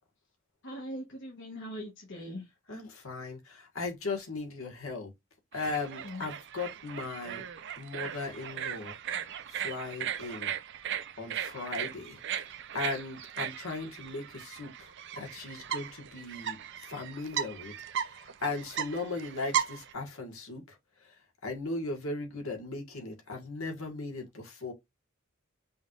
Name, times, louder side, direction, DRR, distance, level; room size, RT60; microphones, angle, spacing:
voice 1, 0.6-2.5 6.0-6.3, equal, 60° left, 1.3 m, -41 dB
voice 2, 2.7-5.1 5.5-7.4 7.8-8.9 9.5-10.5 11.2-12.2 12.7-16.6 16.9-17.7 18.1-20.7 21.4-24.7, left 3 dB, 75° left, 1.7 m, -37 dB
sound 1, 5.5-19.9, right 9 dB, 60° right, 0.6 m, -37 dB
5.5 x 3.1 x 2.5 m
head